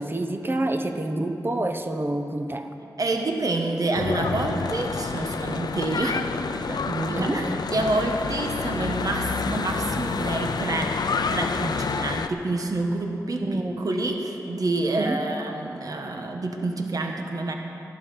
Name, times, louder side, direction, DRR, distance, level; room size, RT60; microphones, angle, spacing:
voice 1, 0.0-2.7 7.1-7.5 13.4-13.8 15.0-15.2, right 1 dB, 35° right, 5 dB, 1.0 m, -28 dB
voice 2, 3.0-7.4 7.7-11.0 11.3-17.5, right 2 dB, 60° right, 3 dB, 1.3 m, -28 dB
Church bell / Traffic noise roadway noise, 3.9-12.3, left 5 dB, 80° left, 0.5 m, -28 dB
14.0 x 11.5 x 5.5 m, 2.8 s
wide cardioid pair, 90°, 7 cm